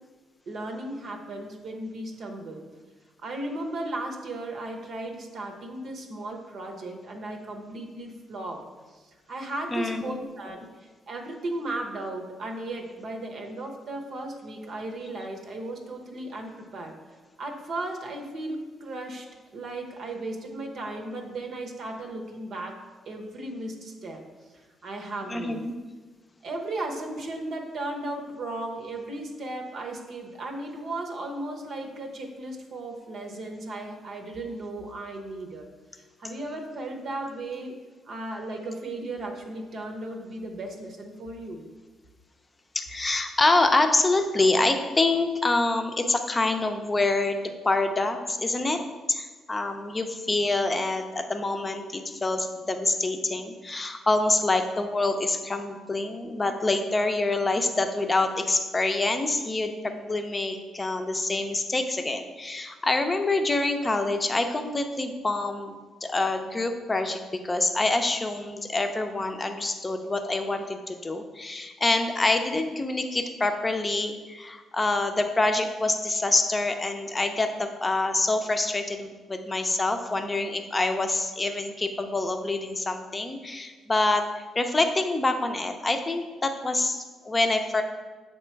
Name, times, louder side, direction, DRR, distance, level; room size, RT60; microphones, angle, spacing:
voice 1, 0.5-2.6 3.2-8.7 9.0-16.9 17.4-19.3 19.5-22.8 23.1-24.2 24.8-25.6 26.4-35.7 36.2-37.8 38.1-41.7, right 2 dB, 65° right, 2 dB, 0.9 m, -35 dB
voice 2, 9.7-10.2 25.3-25.7 42.7-48.8 49.1-87.8, left 2 dB, 25° left, 6 dB, 0.6 m, -26 dB
7.4 x 3.0 x 4.5 m, 1.3 s
cardioid pair, 90°, 0 cm